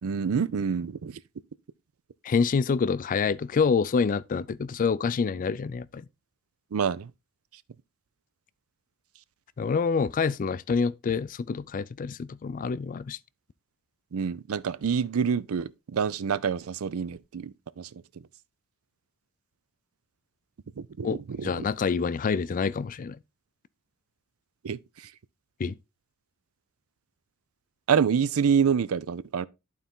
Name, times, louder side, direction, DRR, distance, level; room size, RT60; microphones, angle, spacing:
voice 1, 0.0-1.2 6.7-7.1 14.1-18.3 20.8-21.7 24.6-25.1 27.9-29.5, right 6 dB, 85° right, 0.5 m, -27 dB
voice 2, 2.2-6.0 9.6-13.2 21.0-21.2 21.4-23.2 25.6-25.7, left 5 dB, 40° left, 0.3 m, -27 dB
11.5 x 4.1 x 3.6 m
head